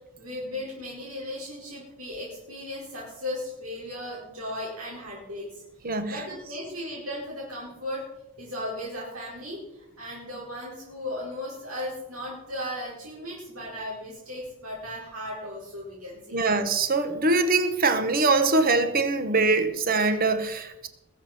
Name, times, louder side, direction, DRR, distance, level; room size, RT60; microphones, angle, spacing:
voice 1, 0.2-5.6 6.1-8.0 8.4-16.4, left 1 dB, 90° right, 4.8 m, -36 dB
voice 2, 5.8-6.2 16.3-20.9, right 3 dB, 45° right, 1.3 m, -23 dB
21.0 x 7.4 x 5.9 m
head